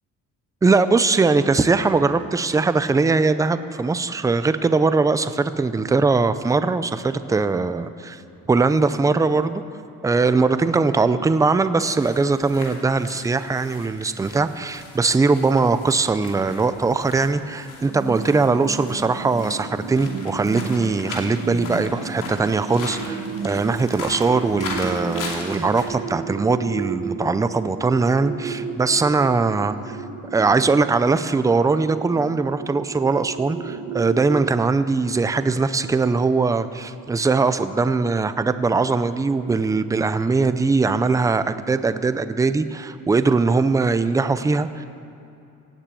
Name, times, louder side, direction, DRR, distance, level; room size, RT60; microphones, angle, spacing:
voice 1, 0.6-8.2 8.5-9.6 10.0-30.0 30.3-44.8, right 4 dB, 10° right, 12 dB, 0.4 m, -21 dB
sound 1, 12.0-25.9, left 4 dB, 85° left, 2.6 m, -38 dB
sound 2, 17.9-34.5, right 5 dB, 85° right, 1.3 m, -33 dB
17.0 x 9.0 x 8.3 m, 2.7 s
cardioid pair, 165°, 32 cm